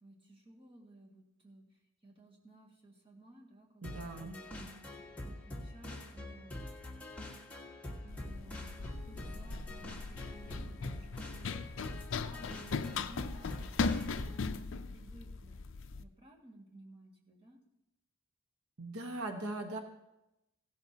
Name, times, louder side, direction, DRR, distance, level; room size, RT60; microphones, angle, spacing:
voice 1, 0.0-1.6 2.0-4.9 5.2-6.6 7.9-11.6 11.9-15.6 16.0-17.6, right 1 dB, 25° right, -2 dB, 1.9 m, -57 dB
sound 1, 3.8-14.5, left 1 dB, 5° left, 1.6 m, -45 dB
voice 2, 3.8-4.4 18.8-19.8, right 2 dB, 80° right, 5 dB, 1.2 m, -40 dB
Run, 8.1-16.0, left 4 dB, 55° left, 0.5 m, -38 dB
16.0 x 12.0 x 2.8 m, 0.90 s
head